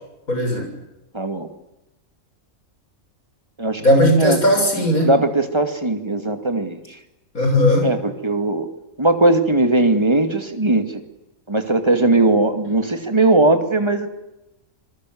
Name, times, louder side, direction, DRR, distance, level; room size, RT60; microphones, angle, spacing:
voice 1, 0.3-0.7 3.8-5.1 7.3-7.9, equal, 85° left, 4 dB, 7.5 m, -17 dB
voice 2, 1.1-1.5 3.6-3.8 4.2-4.4 5.0-6.8 7.8-8.7 9.0-10.8 11.5-14.1, right 2 dB, 20° right, 7 dB, 2.5 m, -18 dB
26.5 x 21.0 x 8.0 m, 0.94 s
omnidirectional pair, 1.4 m